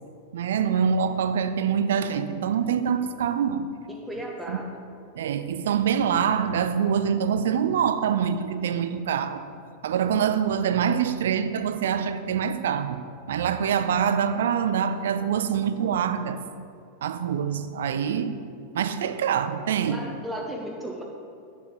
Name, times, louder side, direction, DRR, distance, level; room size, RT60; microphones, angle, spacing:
voice 1, 0.3-3.7 4.5-4.6 5.2-9.4 9.8-16.4 17.0-18.4 18.7-20.0, right 7 dB, 60° right, 11 dB, 0.4 m, -25 dB
voice 2, 3.9-4.7 19.0-19.2 19.9-21.0, equal, 5° right, -1 dB, 0.8 m, -35 dB
8.7 x 6.4 x 3.8 m, 2.4 s
figure-of-eight pair, 90°, 0 cm